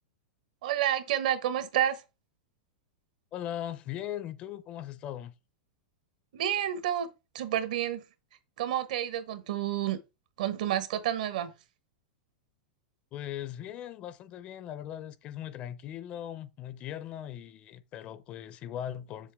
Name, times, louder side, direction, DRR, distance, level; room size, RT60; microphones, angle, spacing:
voice 1, 0.6-2.0 6.3-7.1 7.3-8.0 8.6-10.0 10.4-11.5, right 11 dB, 65° right, 1.3 m, -29 dB
voice 2, 3.3-5.3 13.1-19.3, left 11 dB, 25° left, 0.6 m, -39 dB
7.4 x 7.2 x 3.6 m
supercardioid pair, 165°, 5 cm